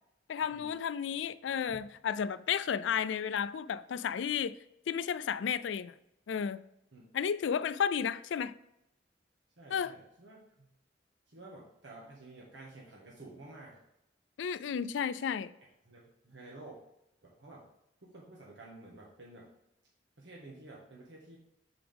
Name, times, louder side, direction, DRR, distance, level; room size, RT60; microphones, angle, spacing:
voice 1, 0.3-4.6 4.9-5.9 6.3-6.6 7.1-8.5 9.7-9.9 14.4-15.5, left 7 dB, 85° left, 0.4 m, -32 dB
voice 2, 9.6-10.7 11.3-13.8 15.8-16.7 17.2-17.7 18.0-19.5 20.2-21.4, right 2 dB, 80° right, 1.4 m, -51 dB
7.8 x 4.8 x 3.5 m
head